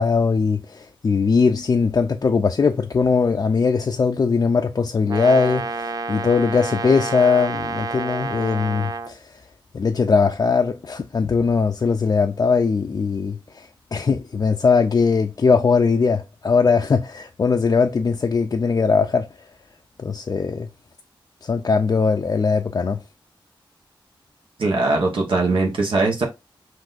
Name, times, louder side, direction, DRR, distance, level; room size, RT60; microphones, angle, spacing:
voice 1, 0.0-9.2 9.7-19.3 20.0-20.7 21.4-23.0, left 5 dB, 45° left, 0.4 m, -20 dB
Brass instrument, 5.1-9.1, right 3 dB, 45° right, 0.5 m, -29 dB
voice 2, 24.6-26.2, right 3 dB, 75° right, 1.1 m, -20 dB
6.0 x 2.6 x 2.5 m
wide cardioid pair, 90°, 9 cm